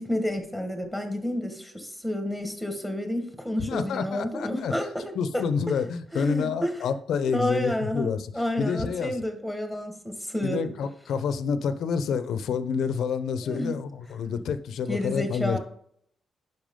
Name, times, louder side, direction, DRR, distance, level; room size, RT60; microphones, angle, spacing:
voice 1, 0.0-5.4 6.1-6.7 7.3-10.6 13.4-13.8 14.9-15.6, left 1 dB, ahead, 5 dB, 1.6 m, -30 dB
voice 2, 3.7-4.7 5.1-8.3 8.6-9.2 10.4-15.6, left 6 dB, 75° left, 11 dB, 0.8 m, -28 dB
10.5 x 5.9 x 3.8 m, 0.66 s
cardioid pair, 130°, 0 cm